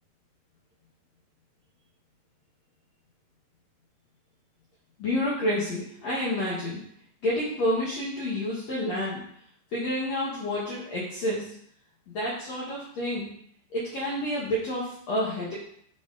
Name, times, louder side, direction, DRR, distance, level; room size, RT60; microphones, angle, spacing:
voice 1, 5.0-6.8 7.2-9.2 9.7-11.5 12.1-13.3 13.7-15.5, left 1 dB, 80° left, -7 dB, 1.4 m, -29 dB
6.6 x 4.0 x 3.9 m, 0.66 s
omnidirectional pair, 4.9 m